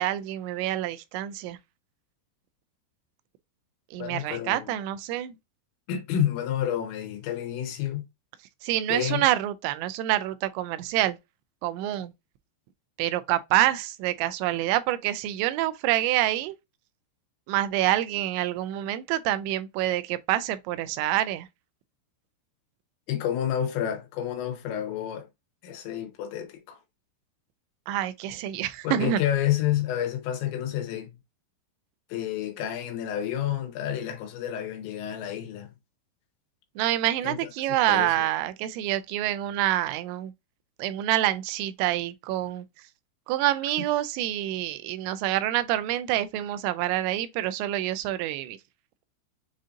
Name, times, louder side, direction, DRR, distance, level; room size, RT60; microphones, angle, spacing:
voice 1, 0.0-1.6 3.9-5.4 8.6-11.2 11.6-12.1 13.0-16.6 17.5-21.5 27.9-29.2 36.8-40.3 40.8-42.6 43.3-48.6, right 13 dB, 85° right, 2.8 m, -27 dB
voice 2, 4.0-4.7 5.9-8.0 8.9-9.2 23.1-25.3 25.6-26.8 28.8-31.2 32.1-35.7 37.2-37.5 37.8-38.3, left 10 dB, 90° left, 3.2 m, -29 dB
7.5 x 2.6 x 2.5 m
omnidirectional pair, 5.2 m